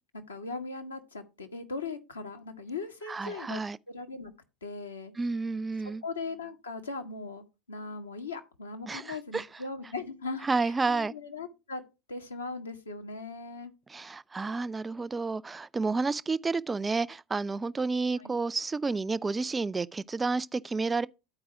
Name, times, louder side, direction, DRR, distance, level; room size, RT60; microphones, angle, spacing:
voice 1, 0.1-3.6 3.9-4.3 4.6-5.1 6.0-11.8 12.1-13.7 18.2-18.3, left 3 dB, 85° left, 1.2 m, -39 dB
voice 2, 3.1-3.8 5.2-6.0 8.9-9.5 10.4-11.1 13.9-21.1, right 4 dB, 15° right, 0.4 m, -30 dB
10.5 x 4.7 x 4.8 m
figure-of-eight pair, 80°, 0 cm